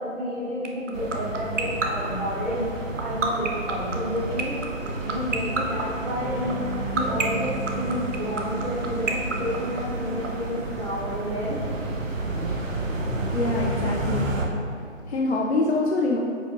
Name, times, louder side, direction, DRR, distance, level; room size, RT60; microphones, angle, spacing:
voice 1, 0.0-6.6 6.9-11.6, equal, 5° right, -12 dB, 0.7 m, -30 dB
sound 1, 0.6-10.3, right 6 dB, 70° right, 0.9 m, -25 dB
sound 2, 0.9-14.5, right 2 dB, 85° right, 1.2 m, -31 dB
Bass guitar, 6.2-12.4, right 8 dB, 40° right, 1.4 m, -41 dB
voice 2, 13.3-14.3 15.1-16.2, left 2 dB, 60° left, -2 dB, 0.7 m, -24 dB
7.7 x 6.0 x 2.5 m, 2.4 s
figure-of-eight pair, 150°, 38 cm